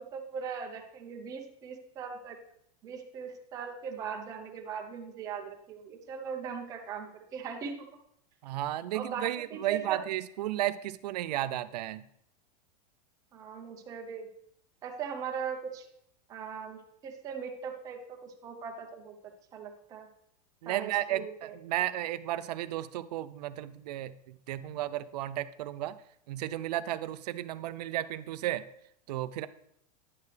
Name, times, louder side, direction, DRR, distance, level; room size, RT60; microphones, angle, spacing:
voice 1, 0.0-2.4 2.8-7.9 8.9-10.0 13.3-14.3 14.8-15.9 16.3-19.1 19.5-20.1 20.7-21.6, right 7 dB, 15° right, 2 dB, 0.7 m, -39 dB
voice 2, 8.4-12.0 20.6-25.9 26.3-28.6 29.1-29.5, right 14 dB, 85° right, 13 dB, 0.4 m, -33 dB
9.6 x 6.5 x 3.3 m, 0.72 s
supercardioid pair, 180°, 20 cm